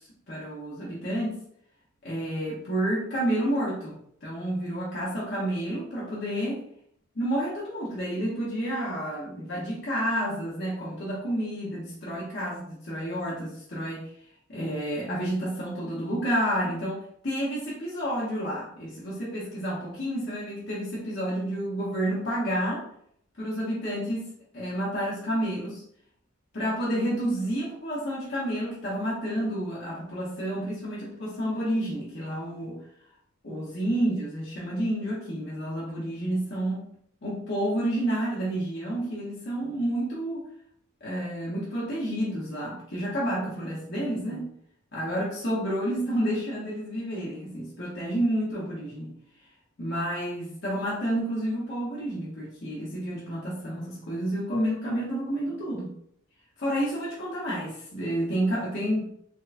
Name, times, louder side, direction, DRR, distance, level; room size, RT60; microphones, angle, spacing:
voice 1, 0.3-1.4 2.0-3.9 4.2-6.6 7.1-14.1 14.5-22.9 23.4-25.8 26.5-32.8 33.4-36.9 37.2-40.4 41.0-44.5 44.9-49.1 49.8-55.9 56.6-59.1, right 1 dB, 50° left, -7 dB, 0.9 m, -30 dB
4.4 x 2.2 x 2.6 m, 0.66 s
head